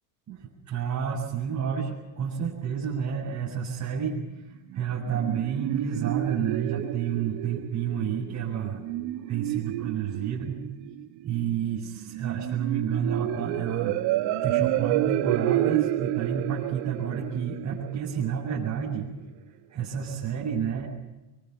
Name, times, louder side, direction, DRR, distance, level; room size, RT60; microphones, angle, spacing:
voice 1, 0.3-4.2 4.7-8.8 9.3-10.7 11.2-14.0 14.4-19.1 19.7-20.9, right 7 dB, 35° right, -5 dB, 7.5 m, -30 dB
sound 1, 4.7-18.7, right 14 dB, 60° right, 1.9 m, -30 dB
24.0 x 23.5 x 6.9 m, 1.0 s
supercardioid pair, 110°, 49 cm